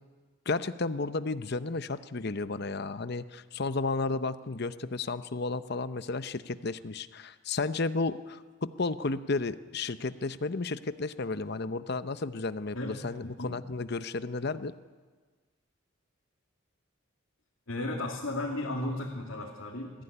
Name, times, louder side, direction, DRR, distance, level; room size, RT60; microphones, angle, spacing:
voice 1, 0.5-14.7, left 3 dB, 55° left, 12 dB, 0.8 m, -33 dB
voice 2, 12.7-13.6 17.7-20.0, left 1 dB, 85° left, -3 dB, 2.8 m, -35 dB
22.0 x 15.5 x 9.9 m, 1.4 s
head